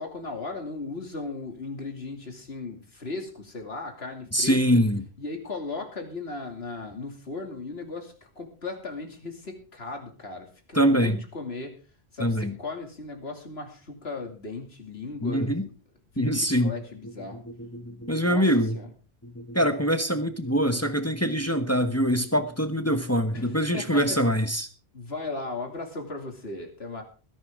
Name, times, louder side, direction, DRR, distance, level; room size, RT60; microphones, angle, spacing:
voice 1, 0.0-4.8 5.2-11.8 12.1-15.6 16.1-17.5 18.3-18.4 18.7-18.9 23.3-24.2 24.9-27.0, left 3 dB, 75° left, 3 dB, 3.0 m, -37 dB
voice 2, 4.3-5.0 10.7-11.2 12.2-12.5 15.2-15.7 16.2-16.7 17.6-18.7 19.3-24.7, equal, 15° left, 8 dB, 1.1 m, -24 dB
20.0 x 11.0 x 3.7 m, 0.37 s
omnidirectional pair, 1.1 m